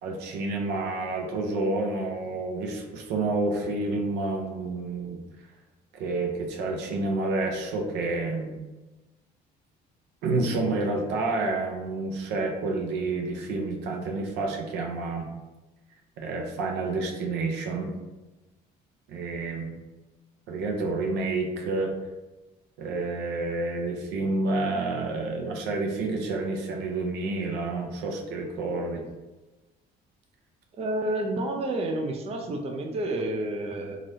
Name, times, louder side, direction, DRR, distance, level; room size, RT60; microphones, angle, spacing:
voice 1, 0.0-5.2 5.9-8.6 10.2-15.3 16.2-18.0 19.1-19.7 20.5-21.9 22.8-29.0, right 3 dB, 90° right, 2 dB, 0.5 m, -29 dB
voice 2, 30.8-34.0, right 1 dB, 35° right, 2 dB, 0.5 m, -29 dB
3.2 x 2.4 x 2.7 m, 1.1 s
cardioid pair, 110°, 17 cm